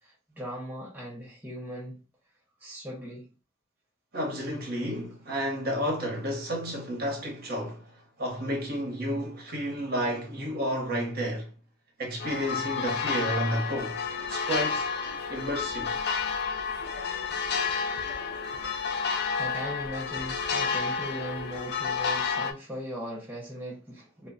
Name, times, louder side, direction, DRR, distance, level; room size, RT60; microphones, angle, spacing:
voice 1, 0.0-2.0 2.6-3.3 19.4-24.3, equal, 10° right, 0.6 m, -38 dB
voice 2, 4.1-7.9 8.2-11.5 12.0-14.0 14.3-14.8 15.3-15.9, equal, 45° right, 0.9 m, -31 dB
sound 1, 12.2-22.5, left 5 dB, 50° left, 0.4 m, -30 dB
2.2 x 2.0 x 3.7 m
head